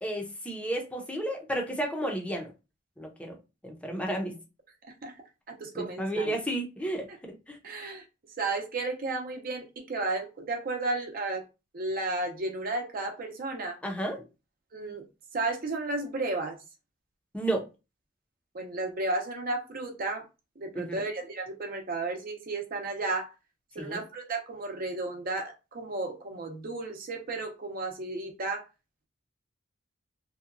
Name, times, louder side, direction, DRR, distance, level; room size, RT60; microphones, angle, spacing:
voice 1, 0.0-2.5 3.0-3.4 3.6-4.4 5.8-7.6 13.8-14.3 17.3-17.7 20.7-20.9 23.8-24.0, right 1 dB, 5° left, 0.6 m, -32 dB
voice 2, 5.5-6.3 7.1-7.2 7.6-8.0 8.4-11.4 11.7-13.8 14.7-15.0 15.3-16.6 18.5-20.3 20.6-23.3 23.7-28.6, right 2 dB, 50° right, 0.6 m, -33 dB
2.7 x 2.2 x 2.5 m
head